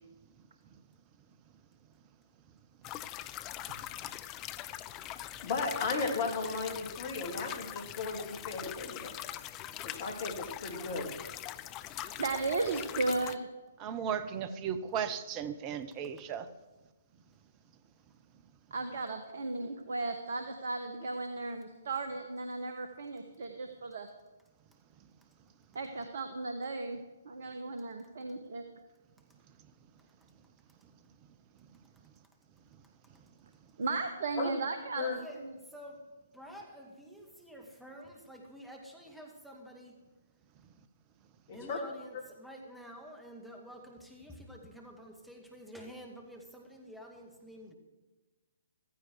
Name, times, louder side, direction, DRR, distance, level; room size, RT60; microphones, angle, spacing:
sound 1, 2.8-13.4, left 13 dB, 25° left, 0.6 m, -42 dB
voice 1, 5.4-9.1 9.8-11.1 34.4-34.5 35.0-35.2 41.5-41.8, left 4 dB, 40° left, 4 dB, 3.1 m, -35 dB
voice 2, 12.2-13.5 18.7-24.1 25.7-27.0 27.2-28.6 33.8-35.5, right 3 dB, 55° right, 7 dB, 1.4 m, -35 dB
voice 3, 13.8-16.5, right 8 dB, 25° right, 13 dB, 1.0 m, -35 dB
voice 4, 35.0-40.0 41.5-47.7, equal, ahead, 1 dB, 2.1 m, -49 dB
15.5 x 14.5 x 4.8 m, 1.2 s
figure-of-eight pair, 130°, 0 cm